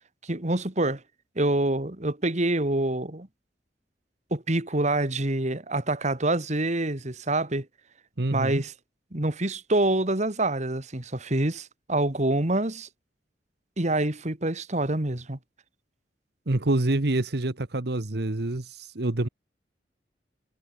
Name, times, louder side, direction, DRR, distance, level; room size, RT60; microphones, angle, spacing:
voice 1, 0.2-1.0 1.4-3.3 4.3-7.7 8.3-8.7 9.1-12.9 13.8-15.4, right 2 dB, 40° right, 2.1 m, -26 dB
voice 2, 8.2-8.6 16.5-19.3, right 2 dB, 60° right, 1.3 m, -26 dB
head